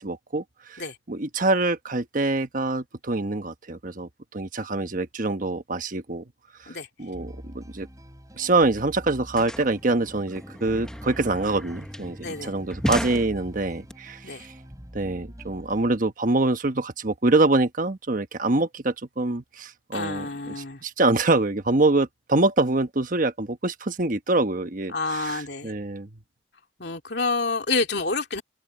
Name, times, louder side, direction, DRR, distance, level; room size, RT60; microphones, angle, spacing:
voice 1, 0.0-6.2 6.6-7.9 8.3-14.5 14.9-26.1, right 2 dB, 50° right, 1.2 m, -25 dB
sound 1, 7.1-16.0, equal, 20° right, 5.3 m, -44 dB
sound 2, 8.4-8.5 8.7-13.9, equal, 5° left, 1.0 m, -35 dB
voice 2, 12.2-12.5 14.2-14.5 19.9-20.8 24.9-25.7 26.8-28.4, left 3 dB, 65° left, 2.9 m, -28 dB
head